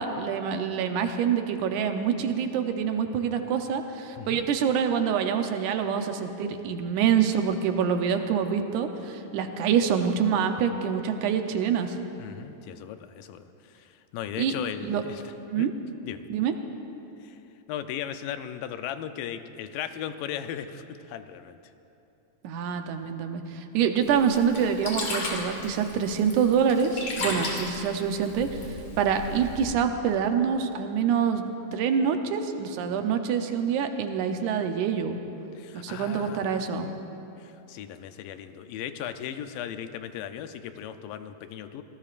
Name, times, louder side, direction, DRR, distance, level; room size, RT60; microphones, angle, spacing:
voice 1, 0.0-12.0 14.4-14.5 14.8-15.0 15.5-15.7 16.3-16.5 22.4-35.2 35.7-36.9, right 7 dB, 75° right, 6 dB, 2.1 m, -26 dB
voice 2, 12.2-15.2 15.6-15.7 16.0-16.2 17.2-17.4 17.7-21.6 27.2-27.5 35.6-36.7 37.4-41.8, left 10 dB, 90° left, 9 dB, 2.4 m, -37 dB
Sink (filling or washing), 24.0-29.7, left 2 dB, 55° left, 3.6 m, -36 dB
25.5 x 18.5 x 2.5 m, 2.9 s
omnidirectional pair, 3.8 m